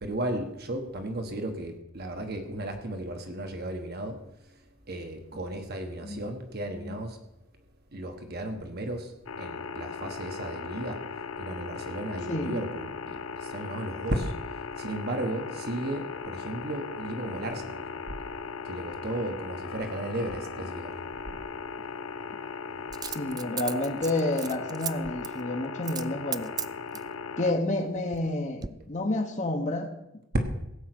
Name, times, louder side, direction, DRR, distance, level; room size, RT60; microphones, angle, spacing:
voice 1, 0.0-4.2 4.5-4.6 4.9-7.2 7.9-11.0 11.4-14.3 14.8-18.2 18.6-21.0 30.3-30.4, right 1 dB, 50° right, 5 dB, 1.4 m, -34 dB
sound 1, 9.3-27.5, left 5 dB, 80° left, 0.6 m, -38 dB
voice 2, 12.3-12.7 23.0-26.5 27.4-29.9, left 2 dB, 35° left, 3 dB, 1.1 m, -30 dB
Coin (dropping), 20.3-20.4 22.9-24.9 25.2-25.4 25.8-26.1 26.3-27.1 27.7-28.3 28.6-28.7, right 8 dB, 20° right, 0.4 m, -35 dB
16.5 x 5.6 x 8.0 m, 0.87 s
head